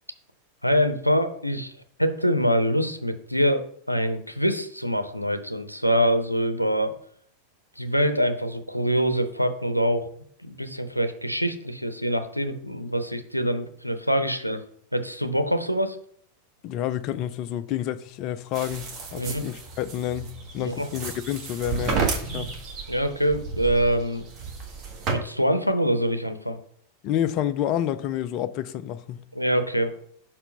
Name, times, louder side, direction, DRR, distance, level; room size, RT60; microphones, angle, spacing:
voice 1, 0.6-1.7 2.0-6.9 7.8-10.1 10.4-14.6 14.9-16.0 19.2-19.4 20.6-20.9 22.9-24.2 25.1-26.6 29.3-29.9, equal, 90° left, 0.6 m, -24 dB
voice 2, 16.6-22.5 27.0-29.2, left 11 dB, 40° left, 0.4 m, -29 dB
sound 1, 18.5-25.1, right 5 dB, 35° right, 1.4 m, -32 dB
5.6 x 4.4 x 5.3 m
figure-of-eight pair, 90°, 0 cm